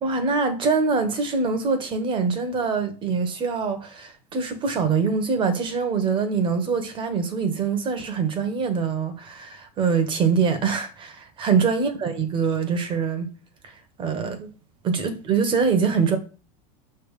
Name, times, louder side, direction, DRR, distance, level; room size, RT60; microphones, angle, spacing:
voice 1, 0.0-13.3 14.0-14.5 14.8-16.2, right 5 dB, 25° right, 1.2 m, -24 dB
6.0 x 3.5 x 4.9 m
supercardioid pair, 140°, 18 cm